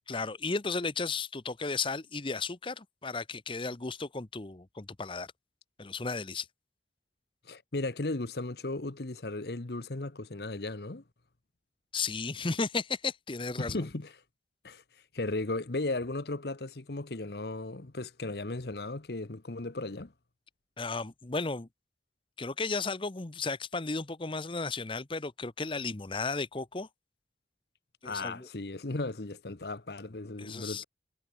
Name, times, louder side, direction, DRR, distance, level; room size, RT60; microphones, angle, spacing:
voice 1, 0.1-5.3 5.8-6.5 11.9-13.8 20.8-21.7 22.4-26.9 28.0-28.5 30.4-30.8, left 4 dB, 30° left, 0.9 m, -34 dB
voice 2, 7.4-11.0 13.6-14.1 14.6-14.8 15.1-20.1 28.0-30.8, left 2 dB, 60° left, 1.1 m, -36 dB
head